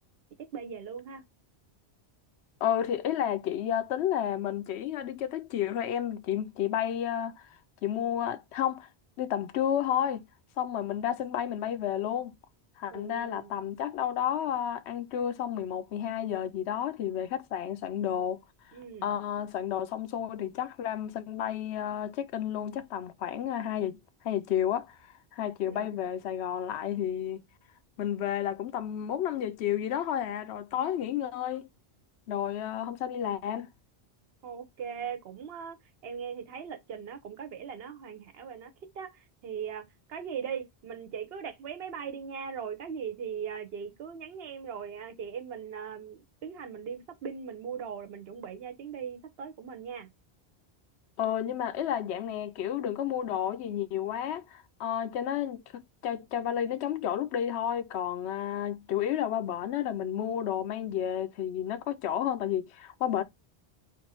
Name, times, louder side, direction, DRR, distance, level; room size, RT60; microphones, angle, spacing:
voice 1, 0.5-1.2 12.9-13.7 18.7-19.1 25.6-25.9 34.4-35.8 36.0-39.8 40.1-50.1, right 7 dB, 70° right, 1.0 m, -39 dB
voice 2, 2.6-7.4 7.8-8.9 9.2-10.2 10.6-12.3 12.8-18.4 19.0-24.0 24.2-25.0 25.3-27.4 28.0-31.7 32.3-33.7 51.2-63.2, left 10 dB, 90° left, 0.9 m, -31 dB
3.3 x 2.6 x 4.1 m
omnidirectional pair, 1.1 m